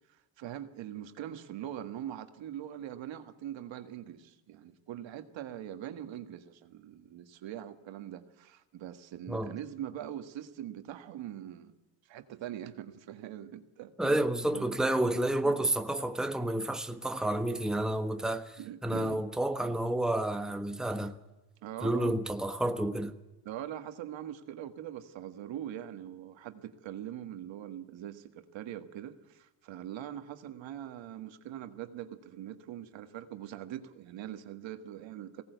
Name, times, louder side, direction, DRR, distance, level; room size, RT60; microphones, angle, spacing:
voice 1, 0.1-11.7 12.1-14.2 14.5-14.7 15.4-15.6 18.6-19.2 21.6-22.2 23.5-35.4, right 11 dB, 70° right, 1.8 m, -42 dB
voice 2, 14.0-21.1 21.8-23.1, right 1 dB, ahead, 1.3 m, -30 dB
19.5 x 17.5 x 8.1 m
supercardioid pair, 80°, 47 cm